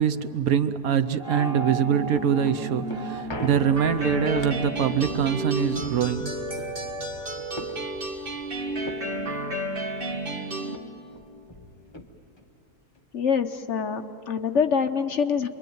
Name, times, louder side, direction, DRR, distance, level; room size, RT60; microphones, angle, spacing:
voice 1, 0.0-6.4, right 8 dB, 70° right, 11 dB, 1.2 m, -24 dB
sound 1, 1.2-5.8, right 2 dB, 5° right, 2.7 m, -35 dB
sound 2, 1.7-10.4 10.7-10.8 11.1-12.5 13.0-13.1, left 1 dB, 20° left, 1.2 m, -41 dB
sound 3, 3.8-10.8, right 1 dB, 35° right, 1.8 m, -32 dB
voice 2, 13.1-15.5, left 6 dB, 55° left, 8 dB, 1.0 m, -25 dB
27.5 x 22.5 x 9.3 m, 3.0 s
omnidirectional pair, 1.7 m